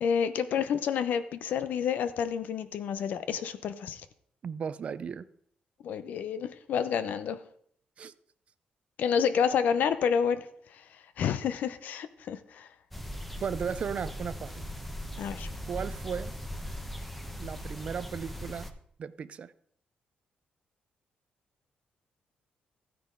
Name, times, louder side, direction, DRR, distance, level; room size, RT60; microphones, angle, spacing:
voice 1, 0.0-4.0 5.8-7.4 9.0-10.8 11.2-12.7 15.2-15.5, left 7 dB, 75° left, 0.8 m, -29 dB
voice 2, 4.4-5.3 8.0-8.1 13.4-14.6 15.7-16.3 17.4-18.7 19.0-19.5, right 7 dB, 45° right, 0.5 m, -35 dB
sound 1, 12.9-18.7, equal, 5° left, 0.9 m, -39 dB
13.5 x 9.4 x 3.8 m
cardioid pair, 140°, 3 cm